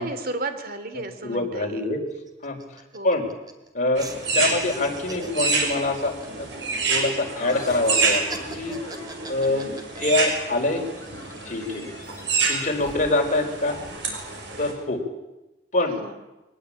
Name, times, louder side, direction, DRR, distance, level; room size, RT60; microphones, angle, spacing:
voice 1, 0.0-1.9 2.9-3.3 9.5-9.8 11.7-11.9 12.8-13.0 15.9-16.1, right 2 dB, 55° right, 9 dB, 2.8 m, -34 dB
voice 2, 1.2-2.0 2.4-2.6 3.0-3.3 3.7-4.1 4.3-6.5 6.9-8.8 9.3-9.7 10.0-10.8 11.4-11.8 12.5-13.8 14.6-15.0 15.7-16.0, left 2 dB, 45° left, 3 dB, 4.6 m, -25 dB
sound 1, 1.2-1.3 1.6-1.7 2.1-3.7 4.0-7.1 7.4-10.6 11.0-11.6, right 2 dB, 20° right, 2.7 m, -42 dB
sound 2, 4.0-14.7, right 4 dB, 80° right, 6.1 m, -28 dB
sound 3, 7.3-12.9, left 3 dB, 15° left, 5.3 m, -43 dB
23.0 x 19.5 x 8.8 m, 1.0 s
head